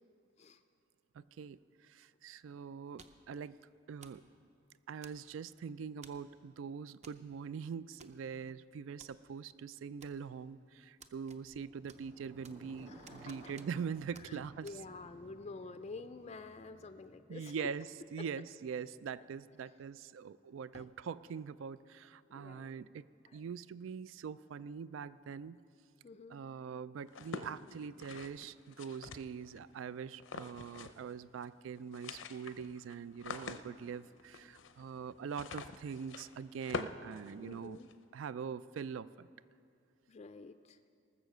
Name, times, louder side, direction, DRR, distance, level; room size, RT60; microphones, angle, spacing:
voice 1, 1.2-1.6 1.9-3.6 3.9-4.2 4.9-14.7 17.3-17.9 18.1-23.0 23.3-25.6 26.3-37.8 38.1-39.3, right 6 dB, 85° right, 17 dB, 0.3 m, -43 dB
sound 1, 3.0-3.3 4.0-4.3 5.0-5.5 6.0-6.3 7.0-7.2 7.5-7.6 8.0-8.5 9.0-9.1 10.0-10.5 11.0-11.6 11.9-12.7 13.1-13.9 14.1-14.3 14.7-14.8, right 5 dB, 35° right, 0.6 m, -57 dB
Motorcycle, 11.4-19.5, equal, 60° right, 3.4 m, -59 dB
voice 2, 12.8-13.5 14.3-17.7 18.2-18.3 20.7-20.8 22.3-22.8 23.3-23.4 26.0-26.4 37.4-37.9 40.1-40.8, left 3 dB, 35° left, 9 dB, 0.4 m, -49 dB
sound 2, 27.1-29.6 30.2-31.1 31.4-31.5 31.8-37.9, left 4 dB, 80° left, 0.6 m, -46 dB
19.0 x 7.1 x 6.6 m, 2.4 s
head